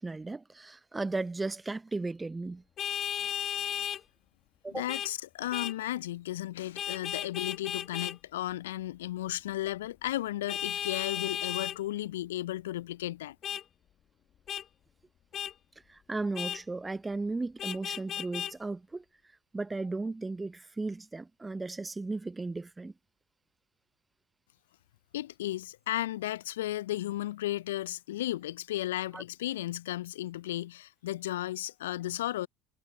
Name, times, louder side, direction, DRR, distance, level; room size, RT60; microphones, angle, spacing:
voice 1, 0.0-2.6 4.6-4.9 15.9-19.0 19.5-22.9 29.1-29.2, right 3 dB, 15° right, 0.7 m, -35 dB
Vehicle horn car horn honking, 2.8-4.0 4.9-5.1 5.5-5.8 6.8-8.2 10.5-11.8 13.4-13.6 14.5-14.6 15.3-15.5 16.3-16.6 17.6-18.5, left 9 dB, 40° left, 2.0 m, -34 dB
voice 2, 4.7-13.4 25.1-32.5, left 14 dB, 70° left, 0.6 m, -34 dB
figure-of-eight pair, 65°, 0 cm